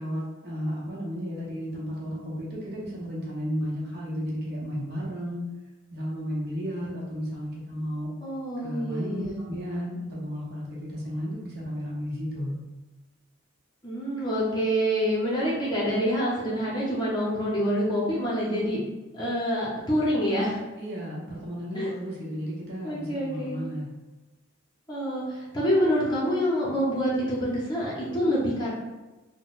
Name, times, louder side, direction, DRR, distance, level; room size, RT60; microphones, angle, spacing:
voice 1, 0.0-5.4 5.9-8.1 8.6-12.6 20.8-23.9, equal, 50° right, -5 dB, 0.8 m, -33 dB
voice 2, 8.2-9.3 13.8-18.8 19.1-20.6 21.7-21.9 22.8-23.6 24.9-28.7, equal, 20° left, -6 dB, 0.6 m, -26 dB
3.7 x 2.1 x 2.4 m, 1.2 s
head